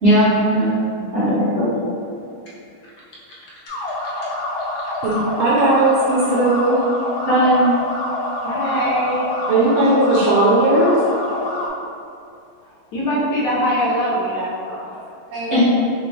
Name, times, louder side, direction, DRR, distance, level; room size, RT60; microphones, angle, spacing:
voice 1, 0.0-0.7 1.1-1.7 7.3-7.7 15.5-15.6, right 1 dB, 40° right, -15 dB, 1.5 m, -16 dB
voice 2, 0.9-1.4 3.7-3.8 4.0-4.3 4.7-4.8 8.4-9.3 12.9-14.9, equal, 60° left, -7 dB, 1.2 m, -23 dB
sound 1, 3.7-11.7, left 1 dB, 75° left, 1.4 m, -26 dB
voice 3, 5.0-6.8 9.5-11.0 15.3-15.6, right 2 dB, 85° right, -6 dB, 1.5 m, -17 dB
3.6 x 2.8 x 3.1 m, 2.5 s
omnidirectional pair, 2.3 m